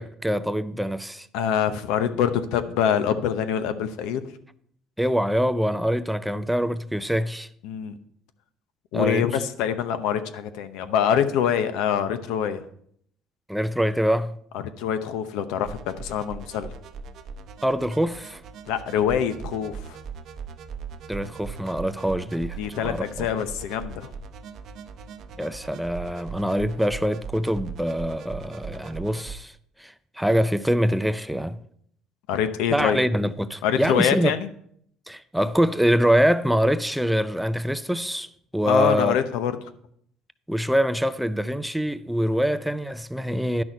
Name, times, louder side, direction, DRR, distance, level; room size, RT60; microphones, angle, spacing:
voice 1, 0.0-1.3 5.0-7.5 8.9-9.2 13.5-14.4 17.6-18.4 21.1-22.6 22.8-23.3 25.4-31.6 32.7-34.3 35.1-39.2 40.5-43.6, equal, ahead, 0.4 m, -24 dB
voice 2, 1.3-4.2 7.6-8.0 8.9-12.6 14.5-16.7 18.7-20.0 22.6-24.1 32.3-33.0 33.6-34.5 38.7-39.6, left 8 dB, 85° left, 0.7 m, -25 dB
sound 1, 15.6-29.4, right 5 dB, 60° right, 0.7 m, -39 dB
10.5 x 6.2 x 4.4 m
cardioid pair, 120°, 0 cm